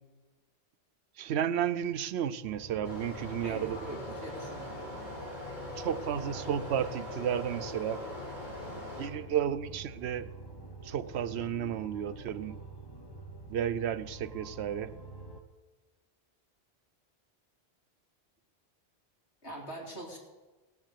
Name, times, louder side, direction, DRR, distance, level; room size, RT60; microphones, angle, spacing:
voice 1, 1.2-3.8 5.8-8.0 9.0-10.3 10.8-12.5 13.5-14.9, right 9 dB, 75° right, 13 dB, 0.9 m, -32 dB
sound 1, 2.4-15.4, right 1 dB, 25° left, 1.0 m, -47 dB
sound 2, 2.8-9.0, left 1 dB, 45° left, 4.5 m, -41 dB
voice 2, 3.4-4.9 19.4-20.2, right 1 dB, 85° left, -2 dB, 3.4 m, -43 dB
17.5 x 7.2 x 8.2 m, 1.3 s
omnidirectional pair, 1.1 m